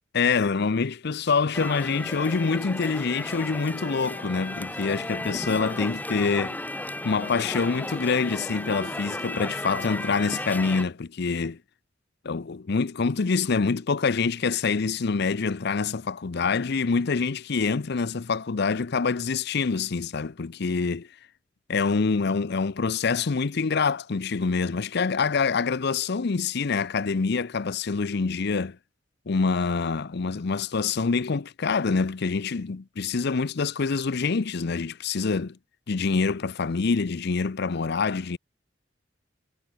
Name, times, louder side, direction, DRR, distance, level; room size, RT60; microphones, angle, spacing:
voice 1, 0.1-6.6 7.0-11.6 12.2-21.1 21.7-28.8 29.3-35.6 35.9-38.4, left 4 dB, 60° left, 0.6 m, -26 dB
sound 1, 1.5-10.9, left 1 dB, 10° left, 2.3 m, -34 dB
head